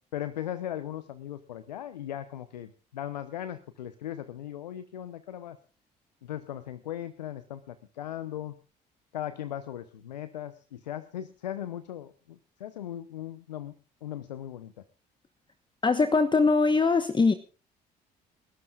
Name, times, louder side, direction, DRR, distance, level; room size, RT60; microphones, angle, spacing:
voice 1, 0.1-5.6 6.2-8.6 9.1-13.7 14.0-14.7, left 11 dB, 85° left, 13 dB, 0.8 m, -38 dB
voice 2, 15.8-17.3, left 4 dB, 20° left, 10 dB, 1.2 m, -22 dB
29.5 x 12.5 x 2.4 m, 0.36 s
hypercardioid pair, 55°, 21 cm